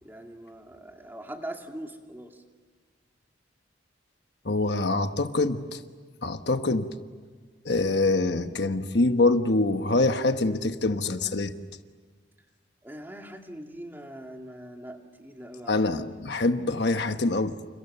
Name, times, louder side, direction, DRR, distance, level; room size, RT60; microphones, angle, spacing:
voice 1, 0.0-2.4 12.8-15.9, right 1 dB, 10° right, 3 dB, 2.4 m, -42 dB
voice 2, 4.4-5.8 6.2-6.9 7.6-11.5 15.7-17.7, left 2 dB, 60° left, 8 dB, 1.2 m, -25 dB
30.0 x 29.0 x 6.8 m, 1.5 s
head